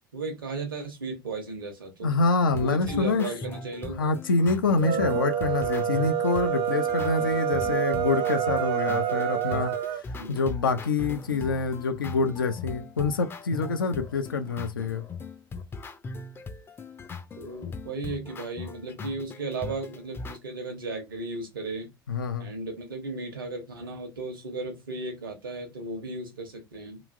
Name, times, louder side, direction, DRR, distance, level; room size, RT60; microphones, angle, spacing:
voice 1, 0.1-2.1 2.6-4.1 4.8-5.0 10.2-10.4 17.4-21.9 22.4-27.0, right 3 dB, 80° right, 0.8 m, -35 dB
voice 2, 2.0-3.3 4.0-15.0 22.1-22.5, left 4 dB, 80° left, 0.5 m, -26 dB
sound 1, 2.5-20.4, left 4 dB, 20° left, 0.4 m, -40 dB
sound 2, 4.7-10.0, right 10 dB, 50° right, 0.4 m, -27 dB
3.0 x 2.4 x 2.4 m
figure-of-eight pair, 75°, 11 cm